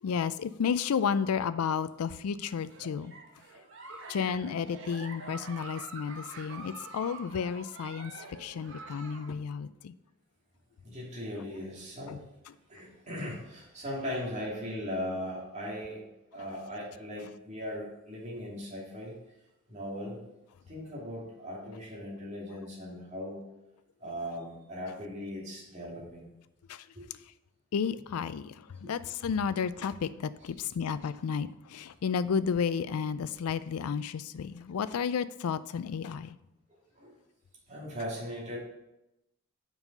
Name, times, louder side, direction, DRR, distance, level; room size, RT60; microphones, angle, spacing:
voice 1, 0.0-3.1 4.1-9.9 12.1-12.2 26.7-26.9 27.7-36.4, left 6 dB, 85° left, 15 dB, 0.4 m, -32 dB
Giggle, 2.6-9.3, right 3 dB, 60° right, 1.0 m, -46 dB
voice 2, 3.7-4.0 10.8-12.3 12.7-16.0 16.3-19.2 19.7-20.2 20.7-23.4 24.0-26.3 26.9-27.0 28.8-28.9 36.9-37.1 37.7-38.6, equal, 30° right, -5 dB, 2.5 m, -39 dB
7.3 x 5.4 x 5.3 m, 0.91 s
head